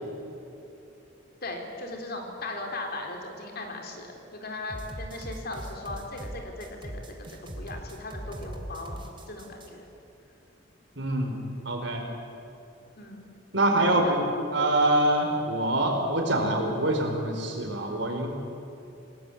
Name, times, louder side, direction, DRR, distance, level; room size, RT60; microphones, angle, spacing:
voice 1, 1.4-9.0 9.3-9.9 13.0-13.3 13.8-14.2, left 2 dB, 50° left, 2 dB, 4.1 m, -38 dB
sound 1, 4.7-9.7, equal, 25° right, 2.9 m, -40 dB
voice 2, 11.0-11.4 11.6-12.0 13.5-14.2 14.5-18.3, right 1 dB, 60° right, 3 dB, 4.7 m, -25 dB
28.5 x 19.0 x 8.7 m, 2.9 s
head